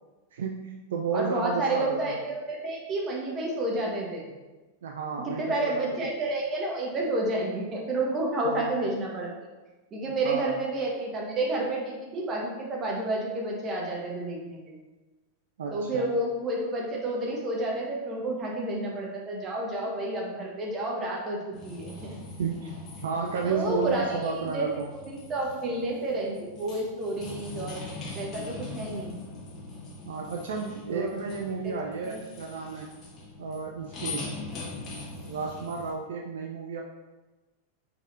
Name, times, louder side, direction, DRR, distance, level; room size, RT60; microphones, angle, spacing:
voice 1, 0.3-2.2 4.8-5.8 8.4-8.7 10.2-10.5 15.6-16.1 22.4-22.7 23.0-24.9 30.0-32.9 33.4-34.4 35.2-36.8, right 5 dB, 60° right, 1 dB, 0.3 m, -32 dB
voice 2, 1.1-4.3 5.2-9.3 9.9-14.8 15.7-22.2 23.4-29.1 30.9-31.1 31.6-31.8 32.0-32.2, right 2 dB, 25° right, -2 dB, 1.1 m, -30 dB
sound 1, 21.5-35.9, left 3 dB, 30° left, 1.3 m, -42 dB
4.9 x 4.1 x 2.5 m, 1.2 s
figure-of-eight pair, 90°, 0 cm